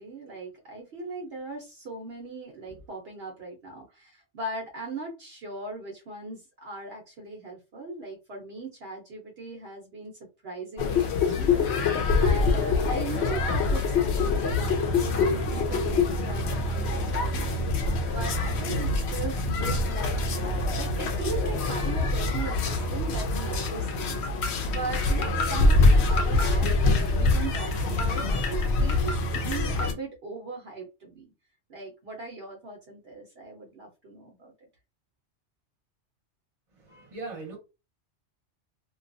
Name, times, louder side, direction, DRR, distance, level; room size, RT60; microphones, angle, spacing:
voice 1, 0.0-10.1 10.4-17.6 18.1-31.3 31.7-34.5, right 3 dB, 65° right, 1.0 m, -39 dB
sound 1, 10.8-29.9, left 3 dB, 70° left, 0.8 m, -25 dB
voice 2, 36.7-37.6, right 3 dB, 30° right, 1.0 m, -40 dB
2.8 x 2.3 x 2.5 m
omnidirectional pair, 1.2 m